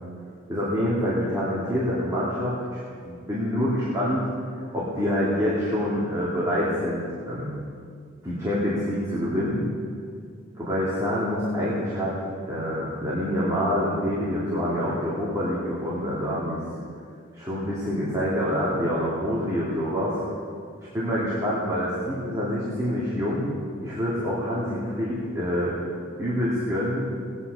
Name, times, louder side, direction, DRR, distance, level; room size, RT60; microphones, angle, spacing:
voice 1, 0.5-4.3 4.7-7.6 8.2-9.6 10.6-12.1 12.5-16.6 17.3-20.2 20.9-23.5 23.8-25.8 26.2-27.0, equal, 15° right, -9 dB, 2.7 m, -26 dB
19.0 x 9.7 x 5.5 m, 2.2 s
head